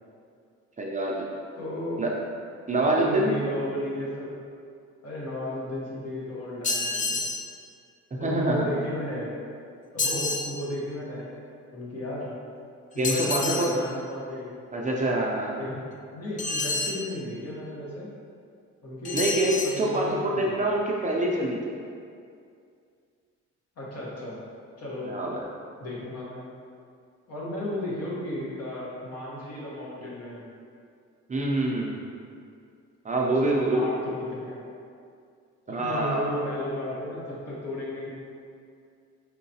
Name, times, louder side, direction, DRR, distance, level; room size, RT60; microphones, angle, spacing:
voice 1, 0.8-1.4 2.0-2.1 2.7-3.4 8.1-8.8 13.0-13.7 14.7-15.6 19.1-21.7 25.0-25.4 31.3-32.0 33.0-33.9 35.7-36.5, right 1 dB, 25° right, -2 dB, 0.5 m, -26 dB
voice 2, 1.6-2.1 2.7-4.3 5.0-7.2 8.2-9.3 9.9-11.3 11.7-12.3 12.9-14.5 15.6-15.8 16.1-18.1 18.8-19.2 19.6-20.7 23.8-24.4 24.8-25.1 25.8-26.5 27.3-30.4 33.3-34.7 35.7-38.1, left 1 dB, 55° left, -6 dB, 1.3 m, -34 dB
sound 1, 6.6-7.5 10.0-10.5 13.0-13.7 16.4-17.0 19.0-19.8, left 3 dB, 25° left, 0.4 m, -28 dB
4.4 x 3.9 x 2.8 m, 2.3 s
cardioid pair, 90°, 30 cm